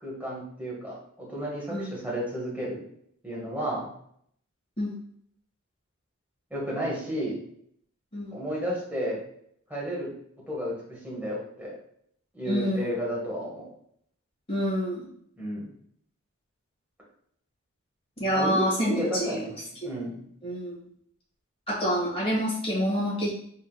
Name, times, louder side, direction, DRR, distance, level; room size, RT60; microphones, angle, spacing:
voice 1, 0.0-2.8 3.2-3.9 6.5-7.4 8.3-9.2 9.7-10.1 10.5-11.7 12.3-13.7 15.4-15.6 18.3-19.5 19.8-20.2, right 1 dB, 10° right, -5 dB, 1.4 m, -32 dB
voice 2, 12.4-12.9 14.5-15.1 18.2-19.5 19.8-19.9 20.4-20.8 21.7-23.3, equal, 25° left, -5 dB, 1.5 m, -27 dB
4.4 x 3.7 x 2.3 m, 0.67 s
head